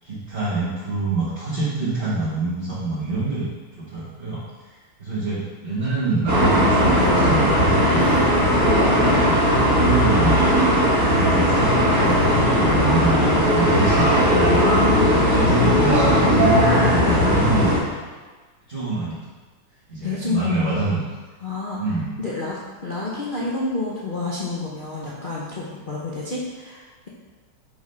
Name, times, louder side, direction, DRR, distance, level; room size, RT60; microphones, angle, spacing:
voice 1, 0.0-3.5 3.8-4.4 4.7-8.2 9.0-10.5 11.1-18.0 18.7-19.2 19.9-21.0 21.8-22.2, right 3 dB, 30° right, -10 dB, 1.5 m, -26 dB
sound 1, 6.3-17.8, equal, 10° right, 1.4 m, -18 dB
voice 2, 7.8-8.2 10.9-11.1 12.0-12.3 14.5-15.2 17.0-17.3 20.0-20.8 21.4-21.8 22.2-27.1, left 3 dB, 70° left, -6 dB, 0.4 m, -29 dB
5.5 x 4.8 x 5.5 m, 1.3 s
omnidirectional pair, 2.4 m